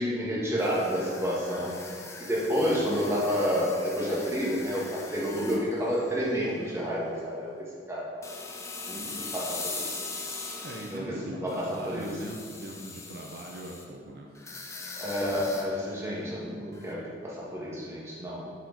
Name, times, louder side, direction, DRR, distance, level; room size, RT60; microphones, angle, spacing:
voice 1, 0.0-1.7 2.3-8.2 8.9-10.0 10.9-12.1 15.0-18.5, equal, 15° right, -6 dB, 1.5 m, -30 dB
sound 1, 0.6-6.7 7.1-7.3 8.2-11.0 11.5-13.8 14.4-16.3 16.7-16.9, left 3 dB, 15° left, 0.6 m, -41 dB
voice 2, 10.6-14.3, right 1 dB, 60° right, -1 dB, 0.7 m, -40 dB
7.8 x 4.8 x 3.9 m, 2.2 s
head